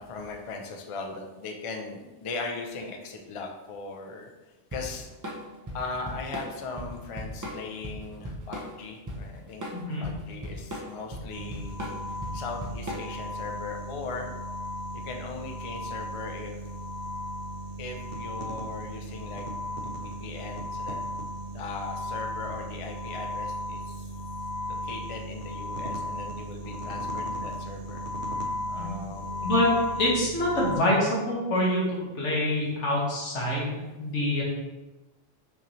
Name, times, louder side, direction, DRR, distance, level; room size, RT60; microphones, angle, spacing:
voice 1, 0.0-4.3 4.7-5.1 5.7-9.7 10.0-11.7 12.3-14.3 15.0-16.6 17.8-19.4 19.8-21.0 21.5-24.1 24.7-28.0 28.7-29.5 33.4-33.6, left 4 dB, 45° left, 2 dB, 0.4 m, -39 dB
Drum kit / Drum, 4.7-13.3, equal, 25° right, 0.4 m, -37 dB
voice 2, 9.7-10.1 28.7-29.0 29.4-29.7 29.9-31.8 32.1-34.4, left 1 dB, 80° left, -4 dB, 1.5 m, -26 dB
sound 1, 11.3-30.8, left 1 dB, 60° right, 0.8 m, -35 dB
5.8 x 2.7 x 3.0 m, 1.1 s
omnidirectional pair, 1.2 m